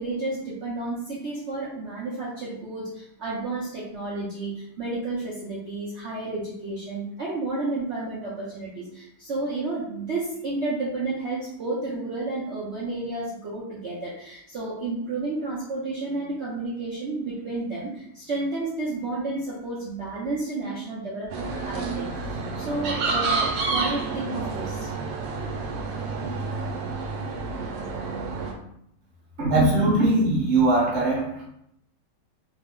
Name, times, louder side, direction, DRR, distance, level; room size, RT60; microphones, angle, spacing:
voice 1, 0.0-24.9, right 2 dB, 65° right, -7 dB, 0.7 m, -31 dB
sound 1, 21.3-28.5, right 4 dB, 90° right, 1.3 m, -29 dB
voice 2, 29.4-31.3, right 2 dB, 45° right, -4 dB, 1.1 m, -20 dB
3.2 x 2.0 x 3.6 m, 0.75 s
omnidirectional pair, 1.9 m